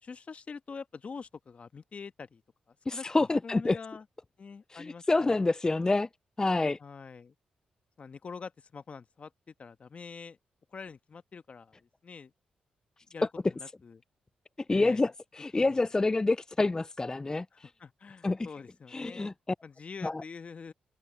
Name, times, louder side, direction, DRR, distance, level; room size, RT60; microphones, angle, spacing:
voice 1, 0.0-2.4 2.7-4.0 4.4-5.5 6.8-7.3 8.0-10.4 10.7-12.3 13.1-14.0 14.7-15.1 15.6-15.8 17.5-19.3 19.6-20.7, left 5 dB, 50° left, 1.3 m, -45 dB
voice 2, 2.9-3.8 4.7-6.1 6.4-6.8 14.7-17.7 18.2-18.5 18.9-19.3 20.0-20.2, left 2 dB, 25° left, 0.3 m, -27 dB
supercardioid pair, 55°, 3 cm